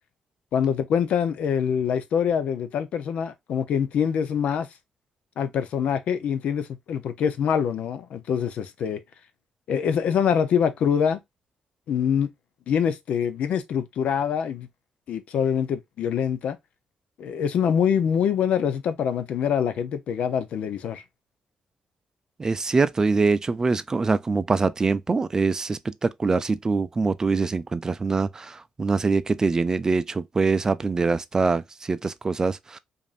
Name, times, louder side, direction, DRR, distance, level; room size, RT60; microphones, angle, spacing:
voice 1, 0.5-4.7 5.4-9.0 9.7-11.2 11.9-12.3 12.7-14.7 15.1-16.6 17.2-21.0, left 8 dB, 80° left, 0.6 m, -24 dB
voice 2, 22.4-32.8, right 4 dB, 30° right, 0.4 m, -24 dB
5.2 x 2.6 x 2.4 m
cardioid pair, 95°, 2 cm